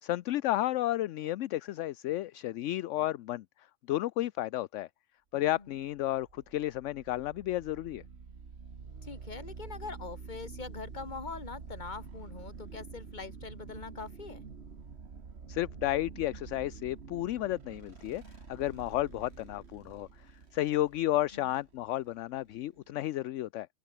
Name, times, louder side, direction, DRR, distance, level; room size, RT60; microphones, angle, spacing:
voice 1, 0.0-3.4 3.9-4.9 5.3-8.0 15.5-18.2 18.5-20.3 20.5-23.7, left 15 dB, 70° left, 0.8 m, -32 dB
sound 1, 5.6-23.0, right 5 dB, 50° right, 1.9 m, -48 dB
voice 2, 9.0-14.4 21.3-21.6, left 4 dB, 35° left, 1.8 m, -43 dB
open air
omnidirectional pair, 1.4 m